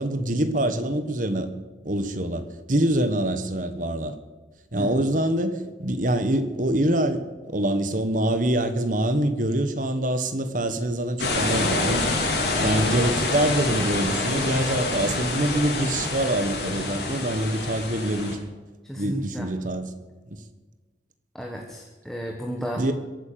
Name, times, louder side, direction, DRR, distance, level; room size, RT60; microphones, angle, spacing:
voice 1, 0.0-1.5 1.8-4.1 4.7-12.1 12.6-18.4 19.0-19.9 20.3-20.4 22.7-22.9, right 1 dB, 45° right, 9 dB, 1.5 m, -25 dB
sound 1, 11.2-18.3, left 2 dB, 70° left, 3.8 m, -27 dB
voice 2, 18.8-19.5 21.3-22.8, equal, ahead, 0 dB, 1.4 m, -33 dB
22.0 x 8.8 x 7.0 m, 1.3 s
head